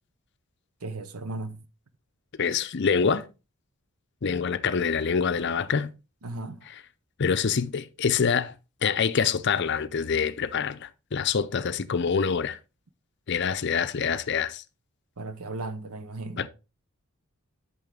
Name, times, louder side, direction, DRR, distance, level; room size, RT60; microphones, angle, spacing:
voice 1, 0.8-1.6 6.2-6.7 15.2-16.5, right 2 dB, 85° right, 0.8 m, -36 dB
voice 2, 2.4-3.3 4.2-5.9 7.2-8.5 8.8-12.6 13.3-14.6 16.4-16.5, left 6 dB, 50° left, 0.5 m, -26 dB
9.0 x 6.3 x 3.8 m
head